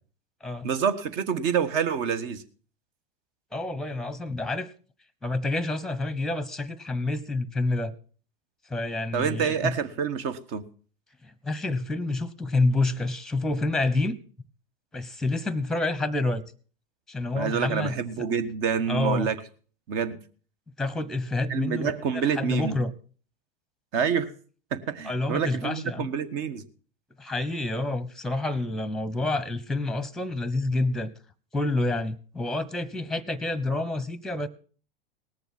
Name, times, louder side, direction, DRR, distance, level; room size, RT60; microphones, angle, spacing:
voice 1, 0.6-2.4 9.1-10.6 17.3-19.4 19.9-20.2 21.5-22.8 23.9-24.3 24.7-26.6, right 7 dB, 45° right, 12 dB, 1.4 m, -27 dB
voice 2, 3.5-4.7 5.2-7.9 8.7-9.7 11.2-14.1 14.9-16.4 17.1-18.0 18.9-19.3 20.8-22.9 25.0-26.1 27.2-31.1 31.5-34.5, left 2 dB, ahead, 17 dB, 1.0 m, -28 dB
18.5 x 6.9 x 6.0 m, 0.41 s
hypercardioid pair, 105°, 29 cm